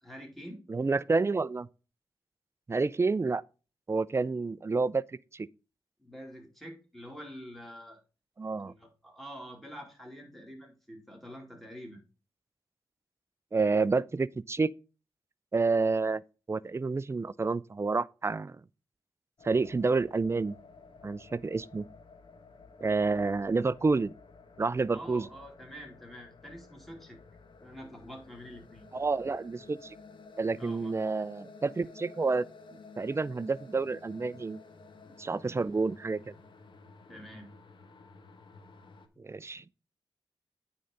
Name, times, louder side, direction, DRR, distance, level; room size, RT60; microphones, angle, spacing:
voice 1, 0.0-0.6 6.0-8.0 8.7-12.0 24.9-27.2 27.6-28.9 30.6-31.1 35.0-35.4 37.1-37.5 39.1-39.2, equal, ahead, 2.7 m, -47 dB
voice 2, 0.7-1.7 2.7-3.4 3.9-5.0 5.3-5.5 8.4-8.7 13.5-14.7 15.5-16.2 16.5-18.6 19.4-20.5 21.0-21.9 22.8-24.1 24.6-25.2 28.9-30.0 30.4-32.5 33.0-34.6 35.2-36.3 39.2-39.7, right 4 dB, 25° right, 0.4 m, -29 dB
sound 1, 19.4-39.1, left 4 dB, 55° left, 1.1 m, -53 dB
9.1 x 3.8 x 5.2 m
cardioid pair, 70°, 10 cm